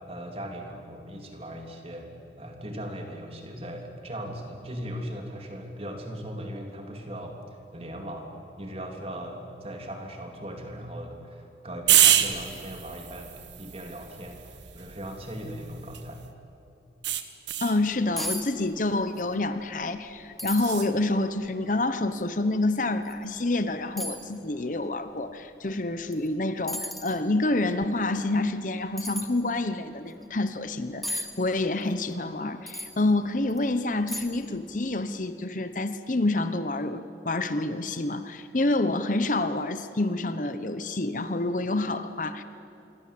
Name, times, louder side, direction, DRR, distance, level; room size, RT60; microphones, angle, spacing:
voice 1, 0.1-2.1 2.4-7.4 7.7-16.2, equal, 35° right, 3 dB, 3.4 m, -38 dB
sound 1, 11.9-16.3 17.0-17.8 20.5-20.9, right 11 dB, 85° right, 1.6 m, -27 dB
voice 2, 17.6-42.4, left 2 dB, 45° left, 10 dB, 1.0 m, -28 dB
sound 2, 18.2-18.5 18.7-19.3 19.6-19.7 20.4-20.8 21.5-21.6 23.0-23.2 24.0-24.2 26.1-26.3 26.7-27.2 29.0-29.3 31.0-31.3 32.7-32.9 33.5-33.6 34.1-34.5 34.8-34.9, equal, ahead, 1.9 m, -34 dB
27.0 x 22.5 x 8.6 m, 2.8 s
head